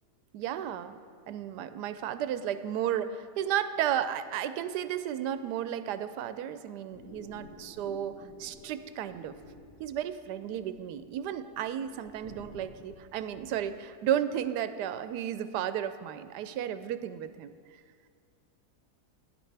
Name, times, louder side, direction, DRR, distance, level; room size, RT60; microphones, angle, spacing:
voice 1, 0.3-1.0 1.3-8.1 8.4-9.4 9.8-17.5, right 10 dB, 80° right, 12 dB, 1.1 m, -33 dB
sound 1, 6.9-13.6, left 1 dB, 80° left, 3.4 m, -52 dB
17.5 x 10.0 x 3.3 m, 2.2 s
omnidirectional pair, 1.8 m